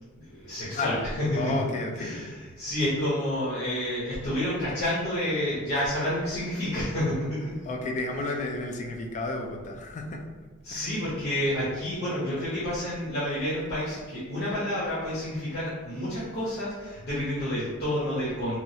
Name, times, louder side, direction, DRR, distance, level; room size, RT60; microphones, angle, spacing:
voice 1, 0.1-1.5 1.9-7.6 10.6-18.6, left 1 dB, 50° left, -10 dB, 0.8 m, -29 dB
voice 2, 0.7-1.1 1.4-2.2 7.6-10.2 10.7-10.9, left 2 dB, 35° left, 3 dB, 0.3 m, -32 dB
3.0 x 2.3 x 2.7 m, 1.3 s
head